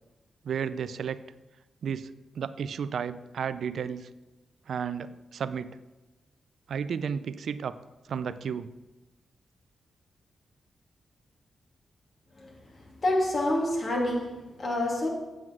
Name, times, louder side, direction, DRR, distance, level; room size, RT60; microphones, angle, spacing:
voice 1, 0.4-1.2 1.8-2.1 2.4-4.1 4.7-5.8 6.7-7.8 8.1-8.7, right 7 dB, 75° right, 0.4 m, -32 dB
voice 2, 13.0-15.1, left 1 dB, 50° left, 2.9 m, -27 dB
7.7 x 7.7 x 6.1 m
cardioid pair, 55°, 0 cm